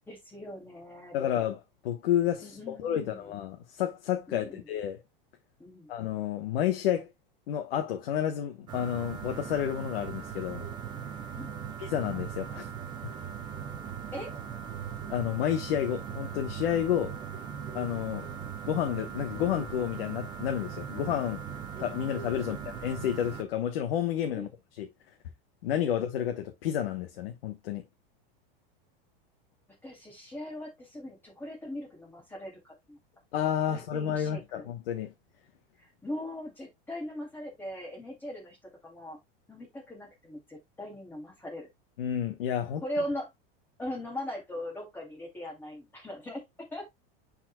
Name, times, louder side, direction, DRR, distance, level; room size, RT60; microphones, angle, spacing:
voice 1, 0.1-1.3 2.4-3.3 4.3-4.7 5.6-5.9 11.4-11.7 14.1-14.3 22.5-22.6 24.3-24.5 29.8-33.0 33.7-34.7 36.0-38.6 38.8-39.2 39.5-41.7 42.8-43.3 43.8-46.4 46.7-46.9, left 1 dB, 5° left, 2.7 m, -40 dB
voice 2, 1.1-5.0 5.9-7.1 7.5-10.7 11.8-12.7 13.0-13.1 15.1-17.2 17.7-18.3 18.6-21.4 21.8-24.9 25.6-27.8 33.3-35.1 42.0-42.8, left 10 dB, 80° left, 1.1 m, -30 dB
sound 1, 8.7-23.4, right 8 dB, 15° right, 0.4 m, -39 dB
10.5 x 4.4 x 2.2 m
supercardioid pair, 170°, 29 cm